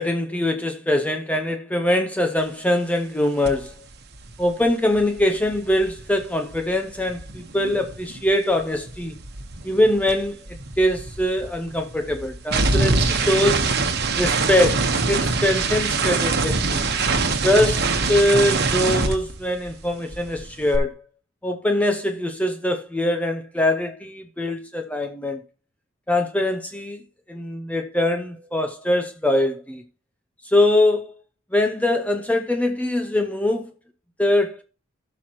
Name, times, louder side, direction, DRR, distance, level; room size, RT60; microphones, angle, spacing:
voice 1, 0.0-3.7 4.4-9.1 9.6-10.4 10.8-13.7 14.2-16.8 17.4-20.9 21.4-25.4 26.1-27.0 27.3-29.8 30.4-31.1 31.5-33.7 34.2-34.6, left 1 dB, 5° left, 0.6 m, -22 dB
sound 1, 3.4-3.7 3.9-8.3 8.6-19.9 20.1-20.8, right 3 dB, 55° right, 1.2 m, -24 dB
15.5 x 6.0 x 3.0 m
head